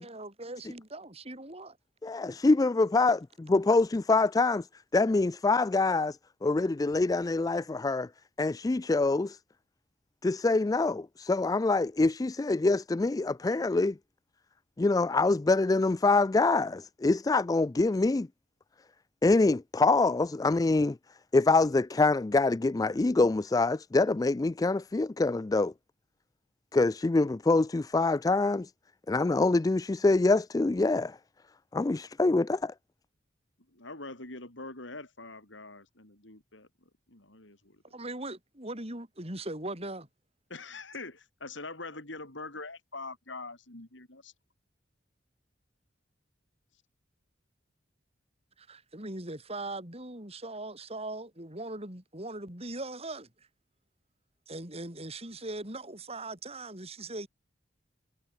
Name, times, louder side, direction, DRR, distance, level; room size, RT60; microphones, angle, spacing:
voice 1, 0.0-1.8 37.9-40.1 48.6-53.3 54.5-57.3, right 2 dB, 30° right, 6.9 m, -40 dB
voice 2, 2.0-4.7 4.9-8.1 8.4-9.4 10.2-14.0 14.8-18.3 19.2-21.0 21.3-25.7 26.7-28.7 29.1-31.2 31.7-32.7, left 3 dB, 20° left, 0.3 m, -25 dB
voice 3, 33.7-36.7 37.1-37.8 40.5-44.3, left 3 dB, 70° left, 5.1 m, -43 dB
head